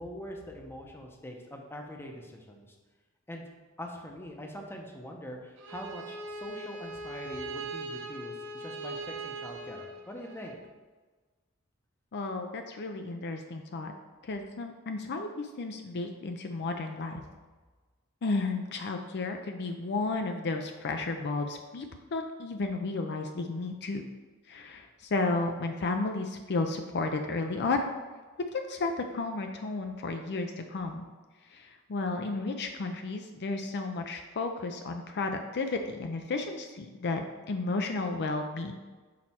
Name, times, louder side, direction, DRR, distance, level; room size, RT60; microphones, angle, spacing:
voice 1, 0.0-2.8 3.3-3.4 3.8-10.6, equal, 10° left, 1 dB, 0.7 m, -43 dB
Bowed string instrument, 5.6-10.5, right 2 dB, 55° right, 0.9 m, -40 dB
voice 2, 12.1-13.9 14.3-17.2 18.2-21.9 22.1-24.0 24.5-27.8 28.5-31.0 31.5-38.7, left 3 dB, 50° left, 5 dB, 0.5 m, -33 dB
6.2 x 4.4 x 4.3 m, 1.3 s
head